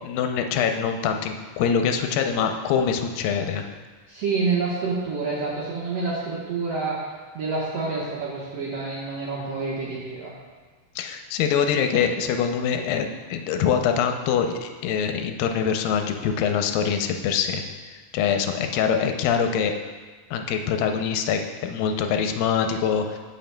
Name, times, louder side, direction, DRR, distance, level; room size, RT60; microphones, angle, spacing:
voice 1, 0.0-3.6 11.0-17.6 18.1-19.7 20.3-23.2, left 7 dB, 85° left, 5 dB, 2.3 m, -24 dB
voice 2, 4.1-7.0 7.3-10.3, right 4 dB, 60° right, -6 dB, 1.8 m, -28 dB
15.5 x 5.7 x 2.2 m, 1.4 s
omnidirectional pair, 4.1 m